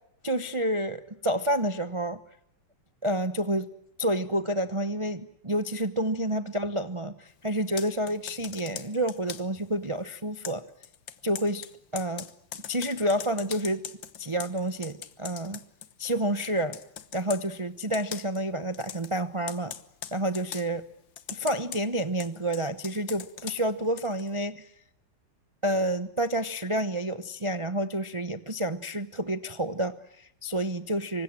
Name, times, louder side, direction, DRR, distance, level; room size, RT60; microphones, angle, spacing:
voice 1, 0.2-2.2 3.0-3.7 4.0-10.6 11.2-11.7 11.9-12.3 12.7-13.8 14.2-15.6 16.0-16.8 17.1-19.7 20.1-20.8 21.3-24.7 25.6-31.2, right 1 dB, 40° right, 11 dB, 0.4 m, -29 dB
Computer keyboard, 7.6-9.6 10.4-16.2 16.4-17.5 17.9-18.4 18.7-19.1 19.5-20.7 21.2-24.3, left 9 dB, 65° left, 1.9 m, -41 dB
27.0 x 24.5 x 7.6 m, 0.74 s
omnidirectional pair, 2.3 m